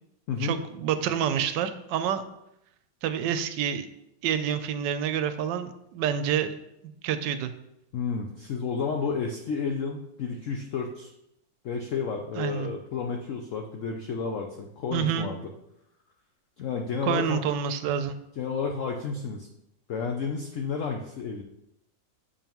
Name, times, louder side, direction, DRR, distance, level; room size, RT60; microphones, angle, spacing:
voice 1, 0.4-2.2 3.0-3.9 4.2-6.6 7.0-7.5 12.4-12.7 14.9-15.3 17.0-18.2, right 8 dB, 80° right, 10 dB, 1.2 m, -28 dB
voice 2, 7.9-11.1 11.6-15.5 16.6-17.4 18.4-19.5 19.9-21.4, left 5 dB, 75° left, 3 dB, 0.7 m, -31 dB
6.7 x 5.3 x 3.0 m, 0.81 s
omnidirectional pair, 2.0 m